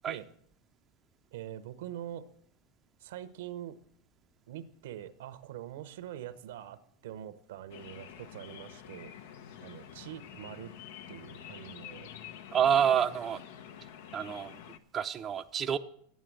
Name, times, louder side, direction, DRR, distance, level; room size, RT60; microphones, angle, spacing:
voice 1, 1.3-2.2 3.0-3.8 4.5-9.1 9.6-10.7 11.1-12.1, right 11 dB, 80° right, 13 dB, 0.8 m, -44 dB
sound 1, 7.7-14.8, left 9 dB, 75° left, 0.8 m, -48 dB
voice 2, 12.5-13.4 14.1-14.6 14.9-15.8, right 8 dB, 30° right, 7 dB, 0.5 m, -28 dB
9.4 x 8.3 x 7.6 m, 0.67 s
supercardioid pair, 125°, 0 cm